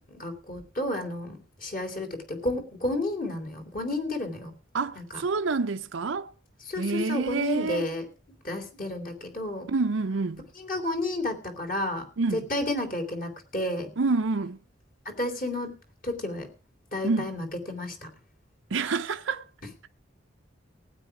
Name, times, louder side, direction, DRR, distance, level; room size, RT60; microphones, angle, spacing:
voice 1, 0.1-4.5 4.9-5.2 6.6-8.1 8.4-9.7 10.5-12.1 12.3-13.9 15.0-15.7 16.0-16.5 16.9-18.1, left 1 dB, 45° left, 3.1 m, -31 dB
voice 2, 4.7-6.3 6.8-7.8 9.7-10.4 12.2-12.4 14.0-14.6 17.0-17.3 18.7-19.4, right 4 dB, 70° right, 0.6 m, -27 dB
18.5 x 9.0 x 4.9 m
head